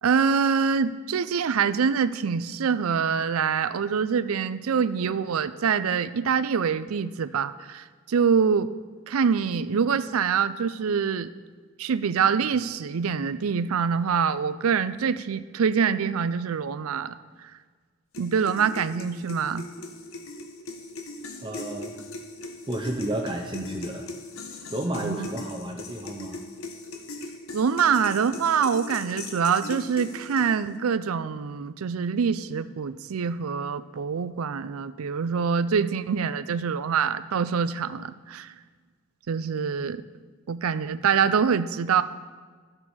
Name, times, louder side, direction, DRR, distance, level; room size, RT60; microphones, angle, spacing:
voice 1, 0.0-8.7 9.1-11.3 11.8-17.2 17.4-17.5 18.2-19.7 25.0-25.3 27.5-38.5 39.3-40.0 40.5-42.0, right 6 dB, 85° right, 14 dB, 0.4 m, -25 dB
sound 1, 18.1-30.8, left 2 dB, 80° left, 1.0 m, -39 dB
voice 2, 21.4-22.0 22.7-24.1 24.7-26.4, right 1 dB, 20° right, 1 dB, 0.6 m, -31 dB
13.5 x 6.9 x 4.2 m, 1.5 s
head